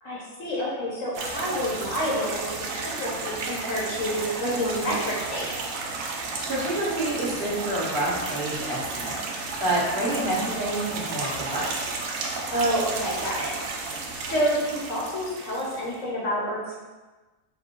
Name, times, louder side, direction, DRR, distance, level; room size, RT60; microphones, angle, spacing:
voice 1, 0.0-5.6 12.5-13.5 14.2-16.8, equal, 60° left, -4 dB, 1.2 m, -28 dB
sound 1, 1.1-15.9, right 3 dB, 70° right, 1.0 m, -33 dB
voice 2, 6.0-11.7, right 1 dB, 45° right, -8 dB, 1.5 m, -28 dB
4.2 x 2.2 x 4.4 m, 1.2 s
omnidirectional pair, 1.6 m